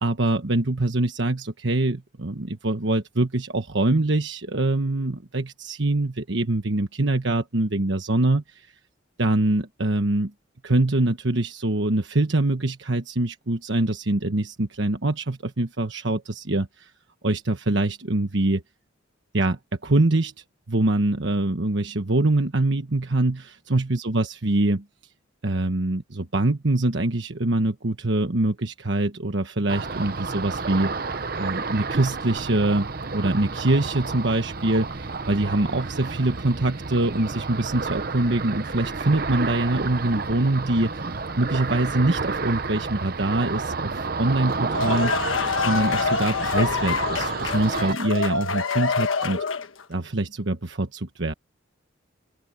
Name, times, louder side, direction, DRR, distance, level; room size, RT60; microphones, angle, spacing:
voice 1, 0.0-8.7 9.2-10.3 10.6-16.9 17.2-18.6 19.3-24.8 25.4-30.9 31.4-41.1 41.4-45.3 45.6-49.4 49.9-51.3, right 2 dB, 65° right, 1.3 m, -24 dB
Ocean, 29.7-47.9, right 4 dB, 50° right, 0.9 m, -30 dB
sound 1, 44.5-49.8, left 5 dB, 90° left, 1.4 m, -26 dB
open air
head